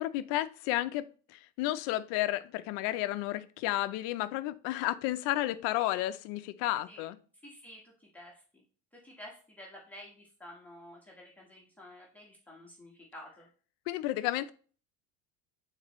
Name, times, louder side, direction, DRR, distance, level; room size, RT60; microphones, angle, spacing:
voice 1, 0.0-7.2 13.9-14.5, left 15 dB, 55° left, 0.6 m, -32 dB
voice 2, 7.4-8.6 9.0-13.5, left 1 dB, 5° left, 1.2 m, -51 dB
8.2 x 4.0 x 3.0 m
cardioid pair, 155°, 29 cm